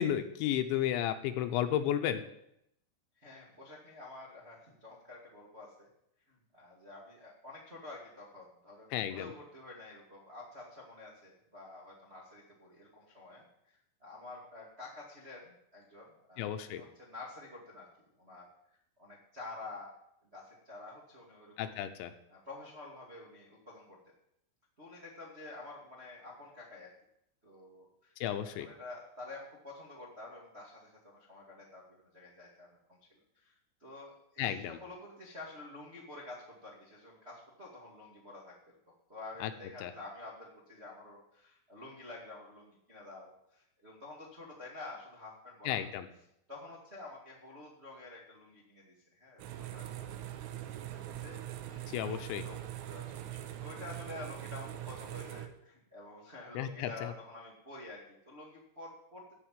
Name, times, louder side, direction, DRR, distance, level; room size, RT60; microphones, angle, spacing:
voice 1, 0.0-2.2 8.9-9.3 16.4-16.8 21.6-22.1 28.2-28.7 34.4-34.8 39.4-39.5 39.8-39.9 45.7-46.1 51.9-52.4 56.5-57.1, left 11 dB, 80° left, 9 dB, 3.0 m, -33 dB
voice 2, 3.1-5.9 6.3-19.9 20.3-21.7 22.3-24.0 24.8-26.9 27.4-28.1 28.4-33.0 33.3-38.6 39.1-45.7 46.5-51.4 51.7-52.6 52.8-59.3, left 2 dB, 70° right, -4 dB, 0.6 m, -49 dB
sound 1, 49.4-55.5, right 12 dB, 90° right, 3.6 m, -42 dB
13.5 x 5.6 x 9.2 m, 0.76 s
omnidirectional pair, 5.6 m